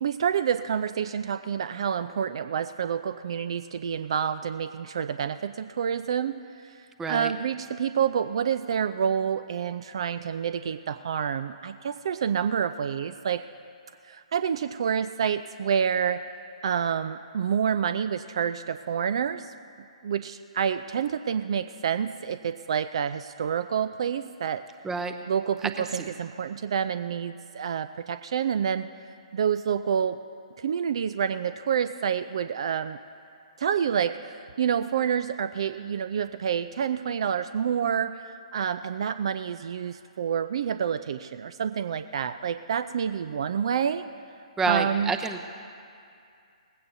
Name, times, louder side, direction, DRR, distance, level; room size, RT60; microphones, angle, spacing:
voice 1, 0.0-6.4 6.6-13.4 14.1-16.2 16.6-19.5 20.0-24.6 25.3-28.9 29.3-30.2 30.6-33.0 33.6-38.2 38.5-44.0 44.7-45.1, right 8 dB, 50° right, 12 dB, 0.4 m, -28 dB
voice 2, 7.0-7.3 24.8-25.1 25.9-26.1 44.6-45.4, right 4 dB, 10° right, 8 dB, 0.7 m, -28 dB
19.5 x 16.0 x 2.7 m, 2.4 s
figure-of-eight pair, 125°, 4 cm